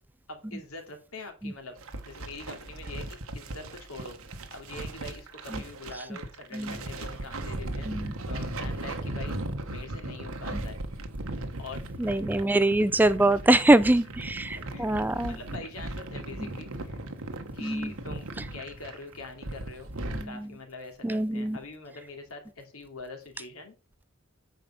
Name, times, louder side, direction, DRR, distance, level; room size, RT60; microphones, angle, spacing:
voice 1, 0.3-1.8 2.0-4.2 4.5-7.9 8.3-9.4 9.7-10.8 11.6-11.8 13.8-13.9 14.7-17.0 17.5-19.9 20.2-23.8, left 3 dB, 80° left, 2.7 m, -44 dB
sound 1, 1.8-20.3, right 1 dB, 75° right, 1.2 m, -37 dB
voice 2, 12.0-14.0 14.4-15.4 17.6-17.9 20.2-20.5 21.0-21.6, right 1 dB, 10° right, 0.3 m, -23 dB
9.3 x 5.1 x 5.6 m
head